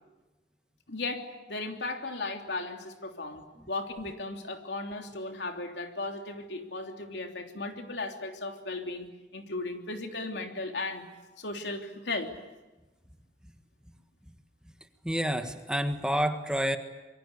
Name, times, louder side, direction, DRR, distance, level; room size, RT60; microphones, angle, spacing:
voice 1, 0.9-3.4 3.7-9.1 9.3-11.0 11.4-12.3, left 2 dB, 80° left, 3 dB, 3.3 m, -36 dB
voice 2, 15.0-16.8, equal, 5° right, 6 dB, 1.5 m, -28 dB
26.5 x 23.5 x 8.3 m, 1.1 s
head